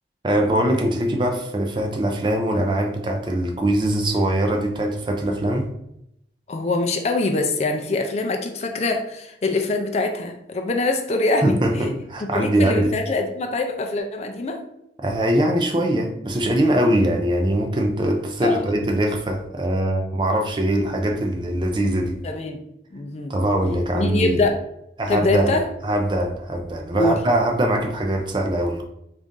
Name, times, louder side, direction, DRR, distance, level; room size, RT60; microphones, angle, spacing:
voice 1, 0.2-5.7 11.4-12.9 15.0-22.2 23.3-24.4 25.0-25.5 25.8-28.8, right 1 dB, 25° right, 2 dB, 0.4 m, -22 dB
voice 2, 6.5-11.9 12.3-14.6 18.4-18.6 22.2-22.6 22.9-23.4 23.9-24.6 25.1-25.7 26.9-27.2, left 2 dB, 35° left, 4 dB, 0.4 m, -24 dB
4.0 x 2.5 x 3.6 m, 0.80 s
head